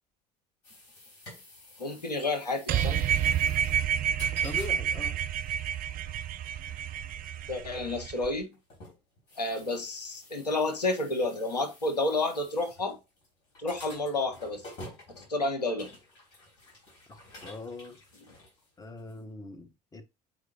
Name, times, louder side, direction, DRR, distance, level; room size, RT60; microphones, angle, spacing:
sound 1, 0.6-19.2, left 1 dB, 60° left, 4.4 m, -51 dB
voice 1, 1.8-3.0 7.5-8.5 9.4-13.0 13.6-14.6 15.2-16.0, left 2 dB, 85° left, 1.1 m, -30 dB
sound 2, 2.7-8.3, right 9 dB, 45° right, 0.6 m, -29 dB
voice 2, 4.4-5.2 17.1-18.0 18.8-20.1, left 2 dB, 15° left, 1.1 m, -42 dB
7.3 x 4.7 x 2.9 m
figure-of-eight pair, 55°, 20 cm